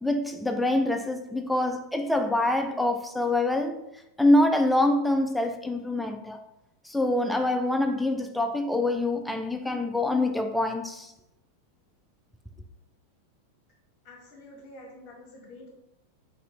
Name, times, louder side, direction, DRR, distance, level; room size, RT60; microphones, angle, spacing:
voice 1, 0.0-3.8 4.2-6.4 6.8-11.1, left 1 dB, ahead, 0.3 m, -25 dB
voice 2, 14.0-15.8, left 1 dB, 30° left, 1.1 m, -48 dB
4.1 x 3.5 x 3.0 m
figure-of-eight pair, 90°, 0 cm